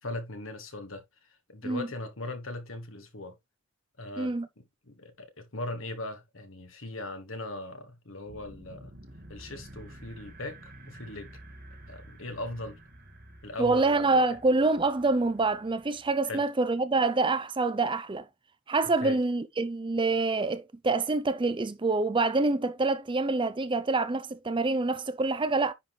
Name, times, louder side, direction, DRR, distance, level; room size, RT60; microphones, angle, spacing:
voice 1, 0.0-1.0 1.5-3.4 4.0-8.9 9.3-11.4 11.9-12.8 13.4-14.2 16.3-16.4 19.0-19.2, left 2 dB, 70° left, 1.7 m, -39 dB
voice 2, 4.2-4.5 13.6-18.2 18.7-25.7, right 3 dB, 25° right, 0.5 m, -26 dB
sound 1, 8.3-16.4, right 1 dB, 45° right, 1.9 m, -50 dB
9.9 x 3.9 x 3.2 m
head